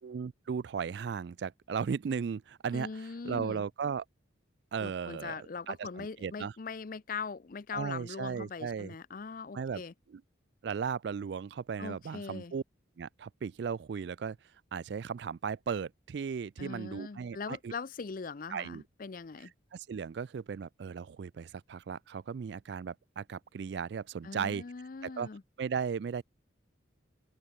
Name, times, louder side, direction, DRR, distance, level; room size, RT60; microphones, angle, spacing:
voice 1, 0.0-4.0 4.7-5.4 5.7-6.5 7.7-8.9 9.5-9.8 10.1-10.2 10.6-12.6 13.0-14.4 14.7-17.7 18.5-18.8 19.7-24.7 25.0-25.3 25.6-26.2, right 6 dB, 60° right, 0.3 m, -36 dB
voice 2, 2.7-3.6 4.8-9.9 11.8-12.5 16.6-19.5 24.2-25.4, left 5 dB, 45° left, 0.5 m, -41 dB
open air
head